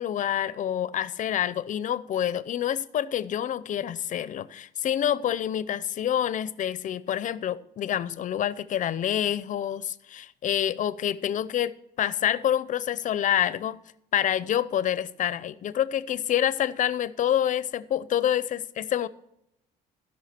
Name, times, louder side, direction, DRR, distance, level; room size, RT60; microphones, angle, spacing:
voice 1, 0.0-13.8 14.1-19.1, left 10 dB, 50° left, 0.6 m, -27 dB
15.5 x 5.6 x 4.3 m
cardioid pair, 110°, 17 cm